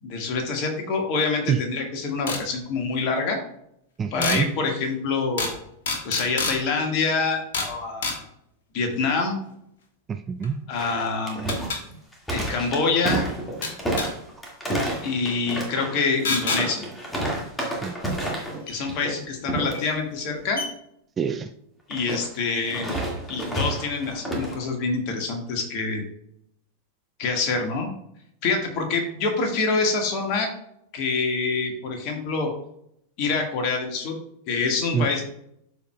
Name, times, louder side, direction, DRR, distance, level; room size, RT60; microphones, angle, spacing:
voice 1, 0.0-3.4 4.1-5.6 6.0-8.2 8.7-9.4 10.7-11.6 12.3-13.2 15.0-16.8 18.7-20.6 21.9-23.0 23.3-26.0 27.2-27.9 28.4-30.5 30.9-32.5 33.2-34.2 34.5-35.3, left 4 dB, 40° left, 3 dB, 1.6 m, -26 dB
sound 1, 2.3-2.4 4.2-4.4 5.4-5.6 5.8-6.6 7.5-7.7 8.0-8.2 10.4-10.5 11.5-11.8 13.6-14.1 16.2-16.6 18.7-18.8 19.7-19.8 20.2-20.3 20.5-20.7, left 3 dB, 60° left, 1.3 m, -27 dB
voice 2, 4.0-4.6 10.1-10.6 17.8-18.2 21.2-21.5 34.9-35.1, right 6 dB, 20° right, 8 dB, 0.4 m, -26 dB
sound 2, 10.7-18.6 18.9-19.2 19.5-19.9 21.9-24.6, right 1 dB, 10° left, 1.9 m, -30 dB
12.5 x 4.7 x 2.2 m, 0.74 s
figure-of-eight pair, 90°, 0 cm